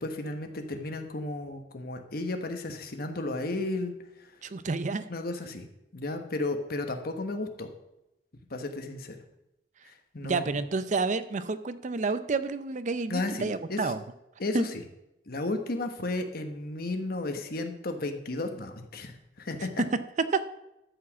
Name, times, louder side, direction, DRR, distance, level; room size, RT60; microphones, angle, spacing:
voice 1, 0.0-4.3 5.1-5.7 5.9-7.7 8.5-9.2 9.8-10.4 13.1-13.9 14.4-14.8 15.3-19.8, left 2 dB, 60° left, 6 dB, 1.2 m, -33 dB
voice 2, 4.4-5.1 10.2-14.0 14.5-14.6 19.8-20.4, right 3 dB, 45° right, 13 dB, 0.5 m, -29 dB
12.5 x 5.1 x 7.2 m, 0.90 s
head